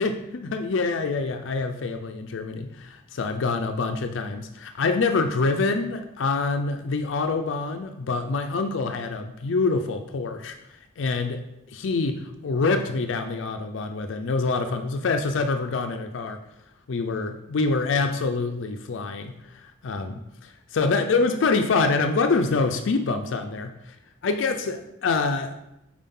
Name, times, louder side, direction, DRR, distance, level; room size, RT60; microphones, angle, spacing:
voice 1, 0.0-10.5 11.0-16.4 16.9-20.2 20.7-23.9 24.2-25.5, left 3 dB, 70° left, 7 dB, 0.4 m, -26 dB
5.4 x 4.9 x 3.7 m, 0.86 s
head